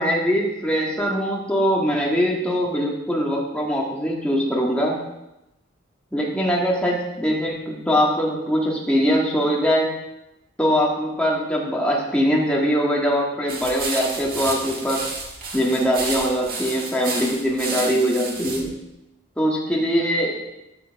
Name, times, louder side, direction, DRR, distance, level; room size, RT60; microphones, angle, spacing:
voice 1, 0.0-5.0 6.1-9.9 10.6-15.0 15.5-18.7 19.4-20.4, equal, 5° left, -3 dB, 1.7 m, -22 dB
sound 1, 13.5-18.6, right 3 dB, 45° right, 1.7 m, -31 dB
13.0 x 6.8 x 3.6 m, 0.92 s
head